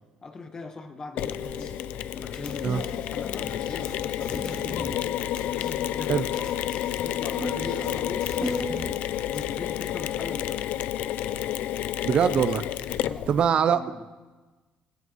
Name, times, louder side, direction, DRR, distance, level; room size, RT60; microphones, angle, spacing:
voice 1, 0.0-1.8 2.1-5.2 5.5-6.3 6.9-10.8 12.9-14.0, left 3 dB, 25° left, 6 dB, 1.3 m, -41 dB
Mechanisms, 1.2-13.5, left 12 dB, 70° left, 0.4 m, -30 dB
sound 1, 1.2-9.0, equal, ahead, 0.5 m, -39 dB
sound 2, 1.4-1.7 2.3-4.9 5.3-5.7 6.2-8.9 9.3-9.4, left 3 dB, 50° left, 2.0 m, -43 dB
voice 2, 12.0-12.6 13.3-13.8, right 7 dB, 40° right, 11 dB, 0.5 m, -22 dB
19.0 x 17.5 x 3.1 m, 1.2 s
cardioid pair, 155°, 3 cm